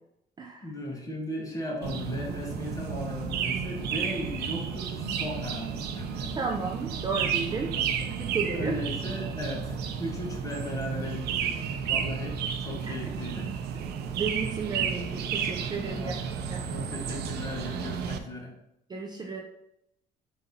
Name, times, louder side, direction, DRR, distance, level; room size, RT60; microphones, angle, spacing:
voice 1, 0.6-6.4 7.7-8.0 8.5-13.5 15.8-16.2 16.6-18.5, left 1 dB, 20° left, -1 dB, 1.2 m, -37 dB
sound 1, 1.8-18.2, right 7 dB, 75° right, 0.5 m, -32 dB
voice 2, 6.4-7.7 8.2-8.8 12.8-12.9 14.1-16.1 16.5-16.6 17.1-17.2 18.9-19.4, right 4 dB, 25° right, 1 dB, 0.5 m, -33 dB
4.0 x 2.8 x 3.8 m, 0.79 s
cardioid pair, 110°, 17 cm